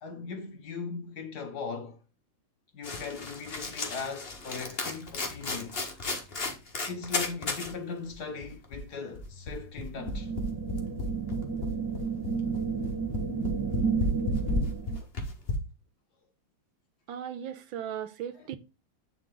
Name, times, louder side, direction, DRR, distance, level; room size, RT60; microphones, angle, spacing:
voice 1, 0.0-2.0 2.7-5.8 6.9-10.3, left 5 dB, 55° left, 1.4 m, -39 dB
sound 1, 2.8-7.7 8.1-8.2 8.4-15.5, left 2 dB, 30° left, 1.4 m, -34 dB
sound 2, 9.9-15.0, right 5 dB, 15° right, 1.1 m, -32 dB
voice 2, 17.1-18.6, right 9 dB, 70° right, 1.4 m, -37 dB
9.8 x 3.8 x 3.7 m
omnidirectional pair, 2.4 m